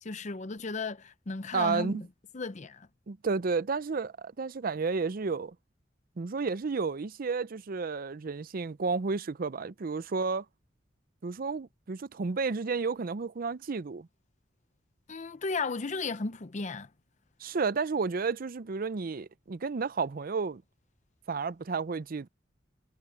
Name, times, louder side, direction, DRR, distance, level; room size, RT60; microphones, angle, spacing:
voice 1, 0.0-2.1 2.3-2.9 15.1-16.9, left 4 dB, 40° left, 0.7 m, -35 dB
voice 2, 1.5-2.0 3.1-5.5 6.2-10.4 11.2-14.1 17.4-20.6 21.3-22.3, right 4 dB, 50° right, 0.5 m, -31 dB
head